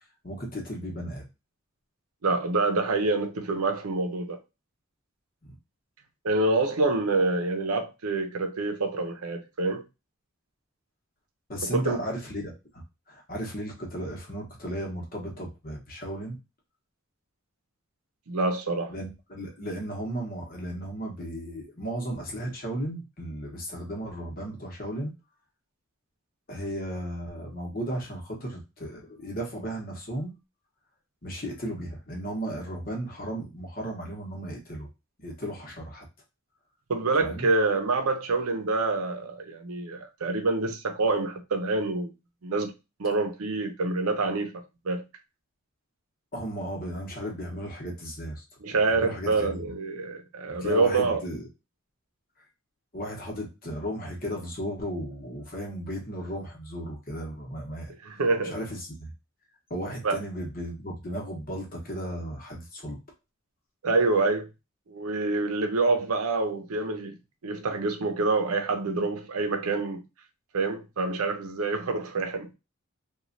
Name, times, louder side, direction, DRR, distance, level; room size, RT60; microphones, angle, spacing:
voice 1, 0.2-1.2 5.4-5.6 11.5-16.4 18.9-25.1 26.5-30.3 31.2-34.9 35.2-36.1 37.2-37.5 46.3-48.4 48.9-49.6 50.6-51.4 52.9-59.1 59.7-63.0, equal, 40° left, 0.9 m, -35 dB
voice 2, 2.2-4.4 6.2-9.8 11.7-12.0 18.3-18.9 36.9-42.1 42.4-42.7 43.0-45.0 48.6-51.2 58.0-58.5 60.0-60.2 63.8-64.5 64.9-67.2 67.4-70.0 70.5-72.5, right 3 dB, 90° right, 0.6 m, -26 dB
3.0 x 2.3 x 2.5 m
head